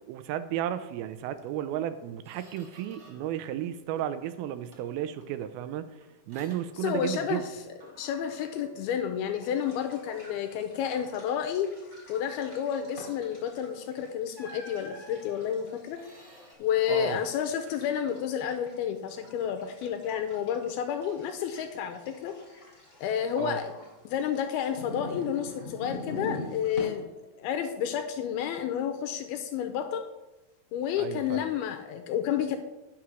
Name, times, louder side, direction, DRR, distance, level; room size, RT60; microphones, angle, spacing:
voice 1, 0.1-5.9 6.3-7.4 16.9-17.2 23.4-23.6 31.0-31.5, right 11 dB, 80° right, 11 dB, 2.3 m, -33 dB
Squeak, 1.4-1.6 1.9-3.4 3.7-4.3 4.7-7.5 7.8-9.6 10.1-10.3 10.7-11.3 13.4-13.6 14.3-16.5, right 1 dB, 40° right, 1.0 m, -53 dB
voice 2, 6.8-7.4 8.0-11.7 12.1-16.0 16.6-22.3 23.0-23.8 24.1-27.1 27.4-30.1 30.7-32.6, left 9 dB, 80° left, 6 dB, 2.5 m, -30 dB
sound 1, 9.4-26.8, left 2 dB, 20° left, 3.3 m, -46 dB
10.0 x 6.3 x 6.0 m, 1.0 s
omnidirectional pair, 4.6 m